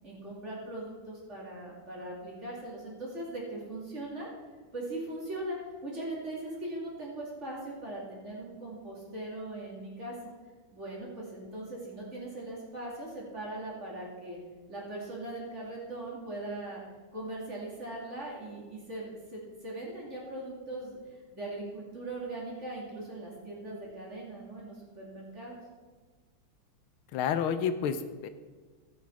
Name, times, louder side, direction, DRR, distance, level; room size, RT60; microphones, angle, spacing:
voice 1, 0.0-4.3 4.7-10.2 10.7-14.4 14.7-16.8 17.1-21.0 21.3-25.6, right 1 dB, 35° right, -4 dB, 2.8 m, -40 dB
voice 2, 27.1-28.3, left 7 dB, 80° left, 10 dB, 1.5 m, -30 dB
16.0 x 6.3 x 4.7 m, 1.4 s
omnidirectional pair, 2.3 m